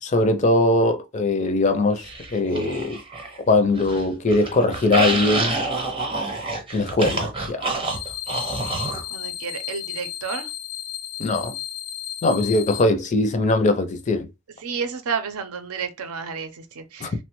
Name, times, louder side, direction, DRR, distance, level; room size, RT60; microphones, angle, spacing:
voice 1, 0.0-3.0 3.5-5.5 6.7-7.7 11.2-11.5 12.2-14.3 17.0-17.1, left 2 dB, 30° left, 0.4 m, -21 dB
sound 1, 2.0-3.4 3.7-9.0, right 2 dB, 25° right, 0.7 m, -27 dB
sound 2, 7.8-12.8, left 11 dB, 90° left, 0.5 m, -34 dB
voice 2, 9.1-10.5 14.6-17.1, right 5 dB, 85° right, 0.6 m, -31 dB
3.1 x 2.1 x 3.0 m
head